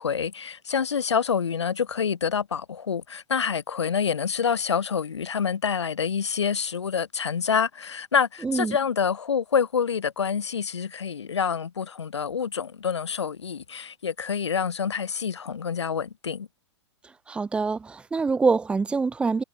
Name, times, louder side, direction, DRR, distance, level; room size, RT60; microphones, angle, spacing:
voice 1, 0.0-16.5, left 6 dB, 75° left, 0.9 m, -27 dB
voice 2, 8.4-8.8 17.3-19.4, right 4 dB, 5° right, 0.4 m, -25 dB
figure-of-eight pair, 110°, 14 cm